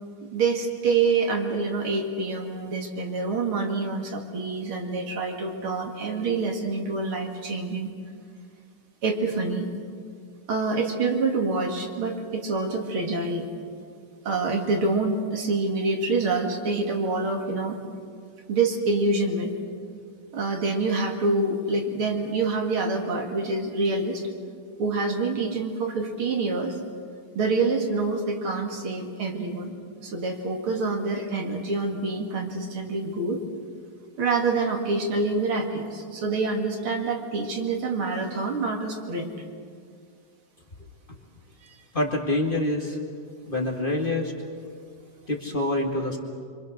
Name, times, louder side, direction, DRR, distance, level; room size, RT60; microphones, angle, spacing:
voice 1, 0.3-7.9 9.0-9.7 10.5-13.5 14.2-17.8 18.5-19.6 20.3-24.2 24.8-26.8 27.3-29.7 30.0-33.4 34.2-39.3 41.6-41.7, right 3 dB, 80° right, 2 dB, 3.1 m, -26 dB
voice 2, 41.9-43.0 43.4-44.3 45.3-46.2, left 1 dB, 25° left, 0 dB, 2.2 m, -26 dB
26.0 x 25.5 x 6.5 m, 2.2 s
omnidirectional pair, 2.3 m